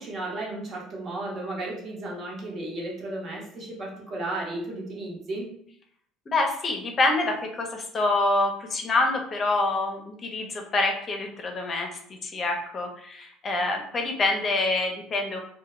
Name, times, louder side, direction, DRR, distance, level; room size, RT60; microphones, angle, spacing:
voice 1, 0.0-5.5, right 2 dB, 45° right, -2 dB, 1.0 m, -34 dB
voice 2, 6.3-11.9 12.2-15.4, left 2 dB, 35° left, 3 dB, 0.6 m, -26 dB
2.2 x 2.1 x 3.0 m, 0.65 s
supercardioid pair, 95°, 0 cm